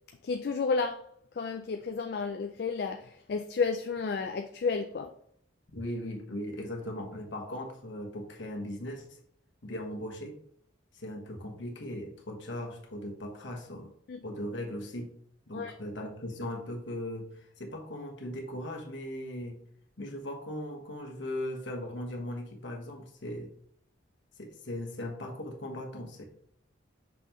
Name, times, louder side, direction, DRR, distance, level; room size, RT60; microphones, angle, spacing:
voice 1, 0.2-1.0 1.3-5.1 14.1-14.2 15.5-15.7, left 4 dB, 55° left, 0.4 m, -31 dB
voice 2, 5.7-9.1 9.6-10.4 10.9-13.9 14.2-15.1 15.5-19.6 20.0-23.5 24.4-26.2, left 1 dB, 70° left, 1.3 m, -38 dB
6.0 x 5.5 x 3.0 m
head